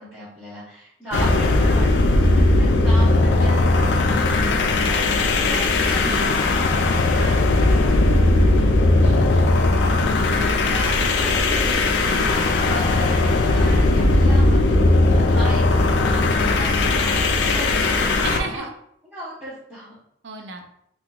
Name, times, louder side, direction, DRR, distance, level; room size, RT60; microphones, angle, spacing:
voice 1, 0.0-8.9 9.8-17.1 17.5-18.6 19.1-19.9, equal, 10° right, -13 dB, 0.9 m, -37 dB
sound 1, 1.1-18.5, left 2 dB, 65° left, 0.3 m, -18 dB
voice 2, 6.0-6.4 9.0-9.9 18.2-18.7 20.2-20.6, right 3 dB, 75° right, 3 dB, 0.5 m, -34 dB
3.7 x 2.5 x 2.2 m, 0.73 s
head